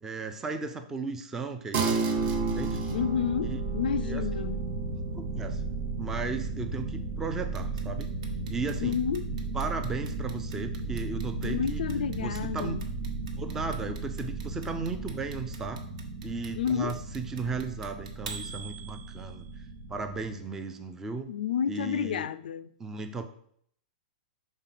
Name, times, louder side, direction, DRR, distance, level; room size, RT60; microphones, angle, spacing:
voice 1, 0.0-2.8 3.5-3.6 4.1-4.2 5.2-5.6 6.0-8.1 8.5-9.0 9.5-11.8 12.2-12.8 13.4-15.8 16.2-19.5 19.9-21.3 21.7-22.3 22.8-23.2, right 4 dB, 10° right, 0.4 m, -36 dB
sound 1, 1.7-11.5, right 4 dB, 25° right, 0.8 m, -35 dB
sound 2, 2.2-20.4, right 3 dB, 85° right, 1.1 m, -35 dB
voice 2, 2.9-4.6 8.8-9.3 11.4-12.8 16.6-17.0 21.3-22.7, left 8 dB, 90° left, 0.4 m, -30 dB
Clock, 7.5-19.5, right 6 dB, 50° right, 1.1 m, -45 dB
5.4 x 4.1 x 5.8 m
supercardioid pair, 165°, 5 cm